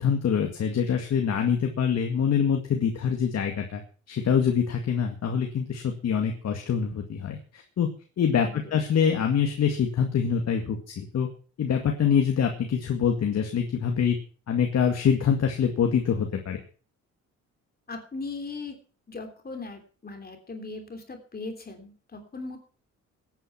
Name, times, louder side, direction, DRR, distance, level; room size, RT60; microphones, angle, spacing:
voice 1, 0.0-3.8 4.1-7.9 8.2-11.3 11.6-14.2 14.5-16.6, left 7 dB, 55° left, 3 dB, 2.2 m, -25 dB
voice 2, 17.9-18.8 19.1-22.6, left 3 dB, 30° left, 5 dB, 3.2 m, -38 dB
15.5 x 9.5 x 5.8 m, 0.39 s
cardioid pair, 90°, 30 cm